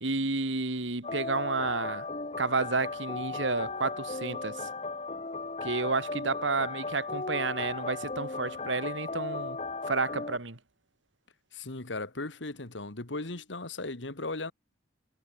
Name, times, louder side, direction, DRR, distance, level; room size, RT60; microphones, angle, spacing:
voice 1, 0.0-2.1 2.4-4.7 5.6-9.6 9.9-10.6, right 3 dB, 85° right, 2.5 m, -31 dB
sound 1, 1.0-10.4, left 3 dB, 35° left, 3.4 m, -36 dB
voice 2, 11.5-14.5, left 2 dB, 75° left, 2.0 m, -37 dB
head